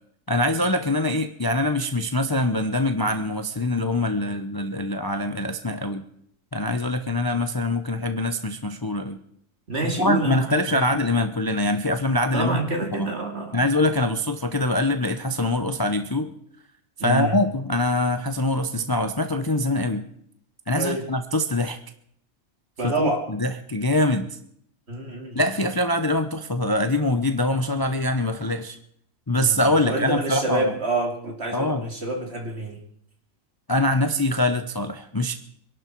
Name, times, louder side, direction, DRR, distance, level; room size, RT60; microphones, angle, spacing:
voice 1, 0.3-6.0 6.5-9.2 9.8-12.6 12.9-13.1 13.5-16.3 17.0-20.1 20.7-21.8 22.8-24.3 25.3-28.8 29.3-30.7 31.5-31.9 33.7-35.3, left 1 dB, 20° left, 8 dB, 0.7 m, -24 dB
voice 2, 9.7-10.8 12.3-13.6 17.0-17.4 20.8-21.1 22.8-23.2 24.9-25.4 29.3-32.8, right 2 dB, 50° right, 2 dB, 3.1 m, -27 dB
25.5 x 11.5 x 4.6 m, 0.69 s
omnidirectional pair, 1.4 m